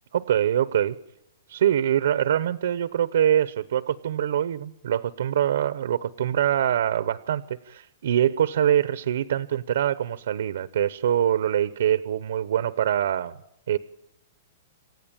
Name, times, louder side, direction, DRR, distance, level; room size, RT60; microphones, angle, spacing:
voice 1, 0.1-1.0 1.5-13.4 13.7-13.8, right 10 dB, 70° right, 14 dB, 0.8 m, -24 dB
27.5 x 15.0 x 8.8 m, 0.89 s
hypercardioid pair, 165°, 0 cm